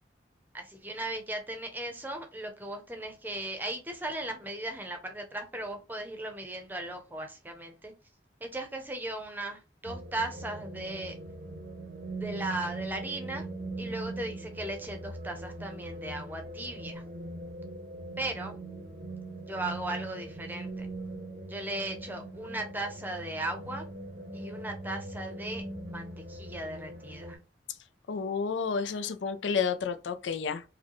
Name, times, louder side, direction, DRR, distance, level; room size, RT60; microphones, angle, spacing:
voice 1, 0.5-7.9 8.4-11.2 12.2-13.4 13.8-17.0 18.2-18.6 19.5-20.9 21.5-23.8 24.3-27.4, right 1 dB, 10° right, 0.7 m, -37 dB
sound 1, 9.8-27.4, right 2 dB, 50° right, 0.7 m, -41 dB
voice 2, 28.1-30.6, left 6 dB, 80° left, 0.4 m, -30 dB
4.8 x 2.2 x 3.0 m
head